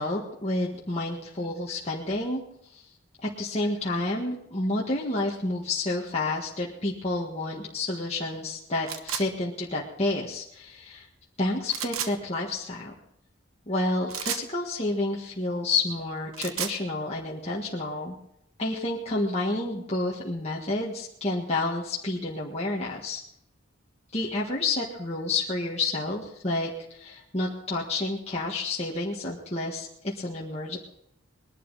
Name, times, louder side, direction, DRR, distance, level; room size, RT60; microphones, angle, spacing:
voice 1, 0.0-2.4 2.7-2.9 3.2-11.1 11.4-12.9 13.7-18.2 18.6-23.2 24.1-30.8, left 2 dB, 30° left, -3 dB, 1.6 m, -30 dB
sound 1, 8.9-9.3 11.7-12.1 14.1-14.5 16.2-16.8, right 9 dB, 85° right, 1.1 m, -32 dB
20.5 x 11.5 x 4.1 m, 0.75 s
head